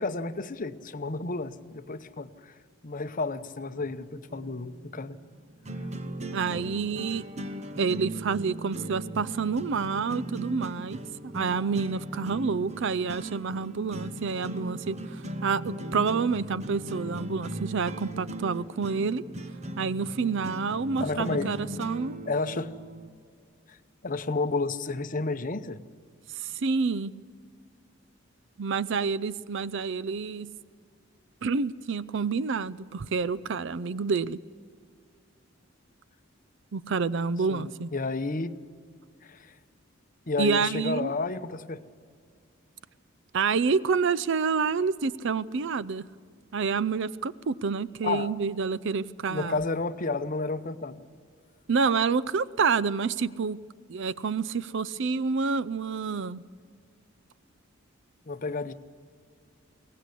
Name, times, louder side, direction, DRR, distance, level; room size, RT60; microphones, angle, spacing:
voice 1, 0.0-2.5 2.8-5.2 21.0-21.5 22.3-22.7 23.7-23.8 24.0-25.8 37.5-38.6 39.2-39.5 40.3-41.8 48.0-48.3 49.3-51.0 58.3-58.7, left 3 dB, 40° left, 11 dB, 0.9 m, -31 dB
sound 1, 4.3-23.1, right 1 dB, 35° right, 1.2 m, -38 dB
voice 2, 6.3-7.2 7.8-11.0 11.2-19.2 19.8-22.2 26.4-27.1 28.6-30.5 31.4-34.4 36.7-37.9 40.4-41.1 43.3-46.1 46.5-49.6 51.7-53.6 53.9-56.4, right 5 dB, 65° right, 18 dB, 0.5 m, -28 dB
22.5 x 18.0 x 8.3 m, 2.1 s
head